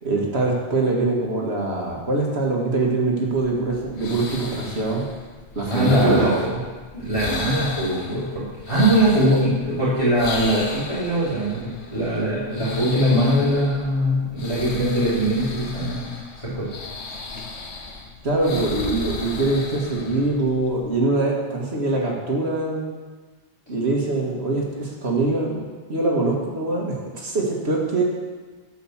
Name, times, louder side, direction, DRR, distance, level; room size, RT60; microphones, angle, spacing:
voice 1, 0.0-5.1 5.6-6.6 9.3-9.4 18.2-22.9 23.7-25.6 25.9-28.0, right 2 dB, 70° right, -2 dB, 2.3 m, -23 dB
sound 1, 3.3-20.9, left 3 dB, 85° left, 1.4 m, -35 dB
voice 2, 5.7-6.3 6.9-16.1 16.4-16.7, right 1 dB, 30° left, -13 dB, 4.0 m, -21 dB
13.0 x 5.9 x 7.4 m, 1.3 s
omnidirectional pair, 1.1 m